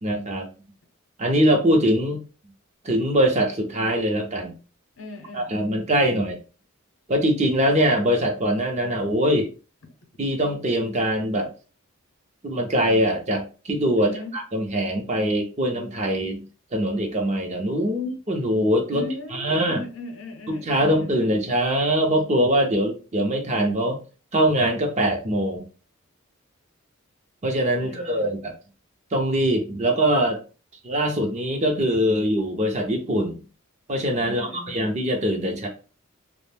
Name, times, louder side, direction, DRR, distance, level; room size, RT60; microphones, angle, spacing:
voice 1, 0.0-0.5 1.2-2.2 2.8-4.6 5.3-6.4 7.1-9.5 10.2-11.5 12.4-16.5 16.7-19.1 19.3-19.8 20.5-24.0 24.3-25.7 27.4-28.5 29.1-30.4 30.8-33.4 33.9-35.7, equal, 30° right, 0.5 m, -22 dB
voice 2, 5.0-6.2 14.0-14.3 18.9-21.4 27.8-28.4 34.2-34.8, left 2 dB, 65° left, 0.7 m, -38 dB
2.4 x 2.0 x 3.3 m
head